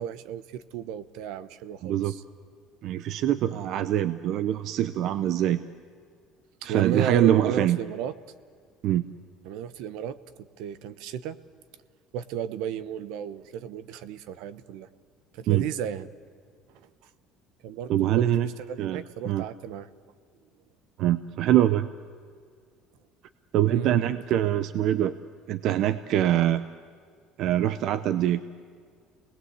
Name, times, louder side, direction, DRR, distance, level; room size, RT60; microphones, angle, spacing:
voice 1, 0.0-2.2 6.6-8.1 9.4-11.4 12.1-14.9 15.3-16.1 16.7-16.8 17.6-19.9 23.6-24.0, right 9 dB, 75° right, 15 dB, 1.0 m, -34 dB
voice 2, 1.8-2.1 2.8-5.6 6.6-7.8 8.8-9.0 15.5-15.6 17.9-18.5 18.8-19.4 21.0-21.9 23.5-25.1 25.5-26.6 27.4-28.4, right 12 dB, 55° right, 13 dB, 0.7 m, -24 dB
29.0 x 20.0 x 8.2 m, 2.1 s
cardioid pair, 145°, 0 cm